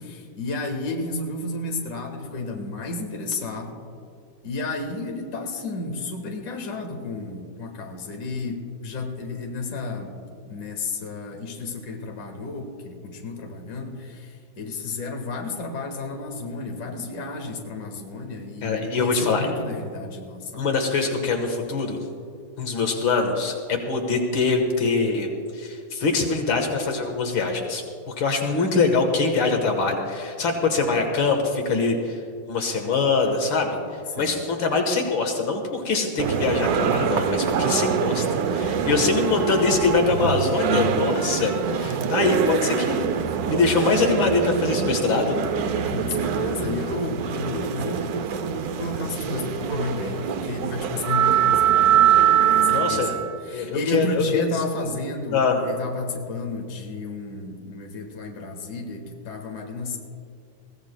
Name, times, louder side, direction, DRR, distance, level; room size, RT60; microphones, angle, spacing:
voice 1, 0.0-3.7 4.4-10.1 10.5-20.8 30.9-31.1 34.1-34.4 38.7-39.1 45.9-48.1 48.8-52.1 52.4-60.0, left 3 dB, 50° left, 2 dB, 1.8 m, -32 dB
voice 2, 18.6-19.5 20.5-22.0 22.6-32.2 32.5-33.8 34.2-43.1 43.5-45.4 52.7-53.1 53.5-54.4 55.3-55.6, left 4 dB, 80° left, 3 dB, 2.1 m, -23 dB
sound 1, 36.2-53.3, right 8 dB, 65° right, 1.0 m, -23 dB
21.5 x 16.0 x 2.2 m, 2.3 s
omnidirectional pair, 2.1 m